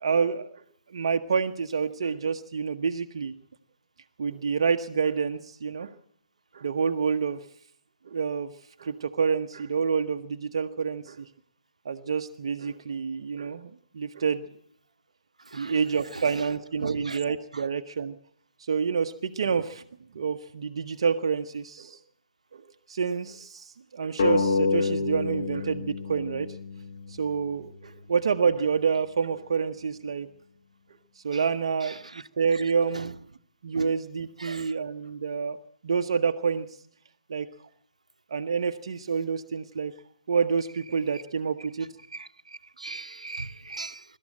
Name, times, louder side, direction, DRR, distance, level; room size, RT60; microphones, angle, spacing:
voice 1, 0.0-0.5 0.9-3.3 4.2-5.9 6.5-7.4 8.1-8.5 8.8-11.3 11.8-14.5 15.5-18.1 18.6-19.8 20.1-22.0 22.5-22.6 22.9-26.5 27.1-30.3 31.2-33.1 33.6-35.6 35.8-36.7 37.3-37.5 38.3-39.9 40.3-41.9, right 6 dB, 50° right, 1.0 m, -28 dB
voice 2, 16.8-17.2 17.5-17.6 31.9-32.2 32.9-33.0 33.7-33.9 34.4-34.7 42.1-44.0, right 3 dB, 75° right, 0.9 m, -38 dB
sound 1, 24.2-27.4, left 4 dB, 45° left, 1.6 m, -28 dB
24.0 x 13.0 x 8.9 m
figure-of-eight pair, 140°, 4 cm